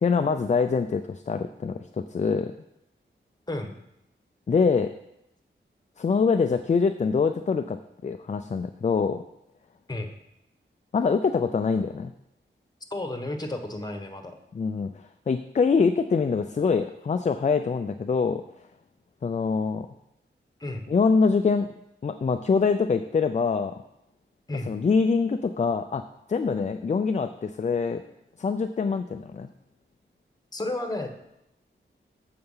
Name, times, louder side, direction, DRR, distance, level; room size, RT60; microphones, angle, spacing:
voice 1, 0.0-2.5 4.5-4.9 6.0-9.2 10.9-12.1 14.5-14.9 15.3-18.4 19.2-19.9 20.9-21.7 22.0-23.7 24.7-26.0 26.3-28.0 28.4-29.5, left 5 dB, 35° left, 8 dB, 0.4 m, -24 dB
voice 2, 12.9-14.4 20.6-20.9 24.5-24.7 30.5-31.1, left 2 dB, 20° left, 5 dB, 1.2 m, -32 dB
7.8 x 5.8 x 5.5 m, 0.83 s
cardioid pair, 70°, 20 cm